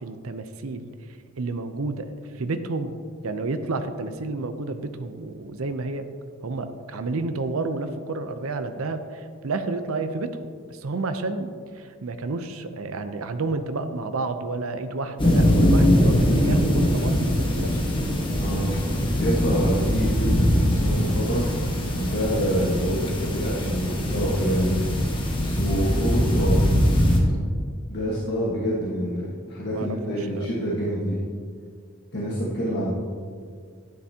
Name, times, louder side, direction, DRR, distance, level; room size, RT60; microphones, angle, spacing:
voice 1, 0.0-0.9 1.4-2.1 2.3-2.9 3.2-6.1 6.4-10.4 10.7-17.7 29.7-30.5, right 3 dB, 85° right, 9 dB, 0.6 m, -30 dB
sound 1, 15.2-27.2, equal, 25° left, 1.3 m, -22 dB
voice 2, 18.3-18.8 19.2-21.5 21.9-24.8 25.4-26.7 27.9-31.2 32.1-32.9, equal, 55° left, -6 dB, 1.5 m, -27 dB
12.0 x 9.9 x 2.8 m, 2.1 s
head